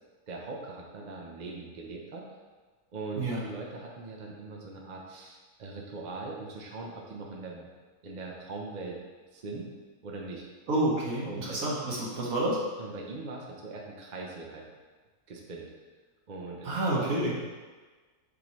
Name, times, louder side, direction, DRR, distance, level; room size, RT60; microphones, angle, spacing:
voice 1, 0.3-2.2 2.9-7.7 8.0-9.0 9.3-9.7 10.0-10.4 11.2-11.6 12.8-14.7 15.3-15.7 16.3-17.3, right 3 dB, 40° right, -1 dB, 0.7 m, -41 dB
voice 2, 10.7-12.6 16.6-17.3, right 1 dB, 70° right, -5 dB, 1.7 m, -29 dB
8.2 x 3.8 x 3.1 m, 1.4 s
omnidirectional pair, 1.6 m